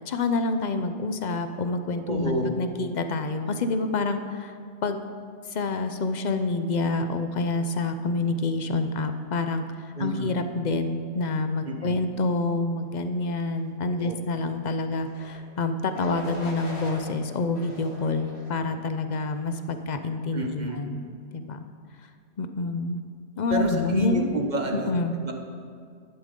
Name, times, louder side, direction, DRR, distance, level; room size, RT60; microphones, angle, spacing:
voice 1, 0.1-4.5 4.8-5.0 5.5-21.0 21.3-21.6 22.4-23.0 23.4-24.4 24.7-25.1, left 3 dB, 50° left, 8 dB, 0.7 m, -27 dB
voice 2, 2.1-2.5 10.0-10.3 11.6-12.0 14.0-14.1 20.3-20.8 23.5-25.3, right 1 dB, 40° right, 2 dB, 1.1 m, -30 dB
sound 1, 15.0-15.4 15.9-17.0 17.5-18.6 19.2-19.5, left 1 dB, 65° left, 2.1 m, -41 dB
12.0 x 11.0 x 3.8 m, 2.2 s
omnidirectional pair, 1.2 m